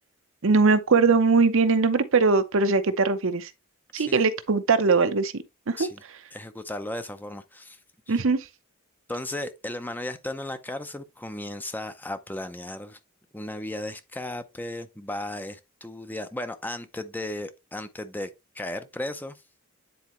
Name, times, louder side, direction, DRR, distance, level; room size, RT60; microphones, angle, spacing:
voice 1, 0.4-3.5 3.9-5.3 5.7-5.9 8.1-8.4, right 4 dB, 65° right, 0.7 m, -21 dB
voice 2, 6.3-7.8 8.1-8.2 9.1-13.0 13.3-19.4, left 1 dB, 10° left, 0.6 m, -35 dB
9.4 x 4.1 x 3.0 m
head